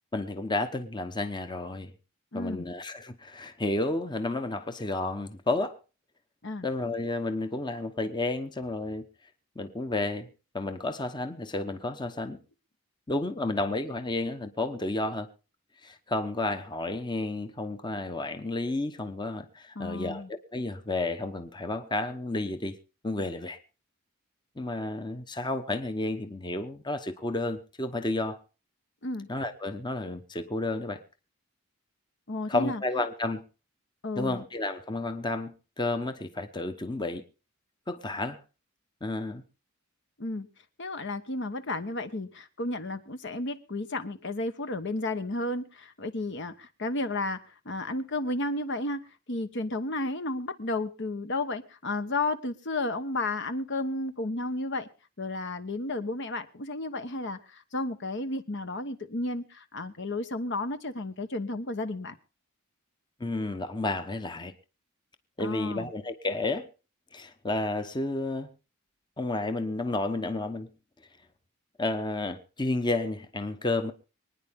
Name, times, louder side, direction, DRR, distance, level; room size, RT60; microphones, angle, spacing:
voice 1, 0.1-1.9 2.3-5.8 6.6-9.0 9.6-10.3 10.5-12.4 13.1-15.3 15.8-22.8 23.0-23.6 24.6-28.4 29.3-31.0 32.5-33.4 34.2-37.2 37.9-38.4 39.0-39.4 63.2-64.5 65.4-66.7 67.1-68.5 69.2-70.7 71.8-73.9, left 2 dB, 20° left, 0.9 m, -31 dB
voice 2, 2.3-2.7 6.4-6.7 19.8-20.3 29.0-29.3 32.3-32.8 34.0-34.4 40.2-40.5 40.8-47.4 47.6-54.9 55.2-62.2 65.4-65.9, left 2 dB, 55° left, 1.1 m, -32 dB
25.0 x 9.9 x 3.6 m
head